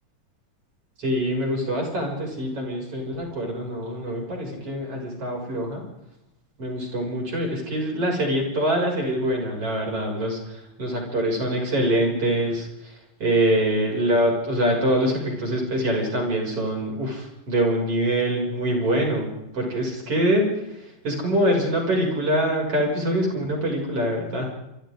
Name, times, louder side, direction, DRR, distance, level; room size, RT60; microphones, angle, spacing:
voice 1, 1.0-5.9 6.6-24.5, right 1 dB, 40° right, 0 dB, 7.5 m, -24 dB
28.5 x 25.0 x 3.9 m, 0.85 s
omnidirectional pair, 3.9 m